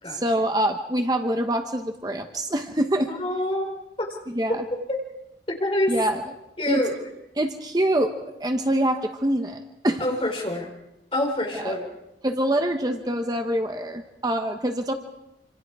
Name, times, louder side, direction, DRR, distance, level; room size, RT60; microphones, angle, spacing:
voice 1, 0.1-3.1 4.3-4.6 5.9-6.3 6.7-6.8 7.4-10.0 11.5-11.8 12.2-14.9, right 1 dB, 20° right, 5 dB, 1.1 m, -25 dB
voice 2, 3.1-4.1 4.5-4.6 4.9-5.0 5.5-6.0 6.6-6.9 10.0-10.7 11.1-11.9, left 1 dB, 30° left, 1 dB, 4.6 m, -26 dB
26.5 x 26.5 x 4.8 m, 0.92 s
head